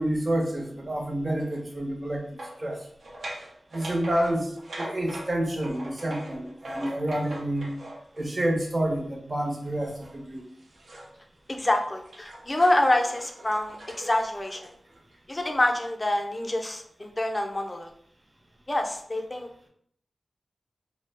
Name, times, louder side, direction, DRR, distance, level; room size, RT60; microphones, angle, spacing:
voice 1, 0.0-2.2 2.6-2.8 3.7-7.7 8.2-10.4, right 1 dB, 40° right, 2 dB, 0.6 m, -28 dB
sound 1, 1.4-1.6 2.4-8.4 9.6-11.2 11.6-15.8, right 1 dB, 85° right, 0.6 m, -42 dB
voice 2, 11.5-14.6 15.3-17.9 18.7-19.5, left 1 dB, 30° left, 4 dB, 0.4 m, -26 dB
2.2 x 2.0 x 3.3 m, 0.65 s
cardioid pair, 55°, 0 cm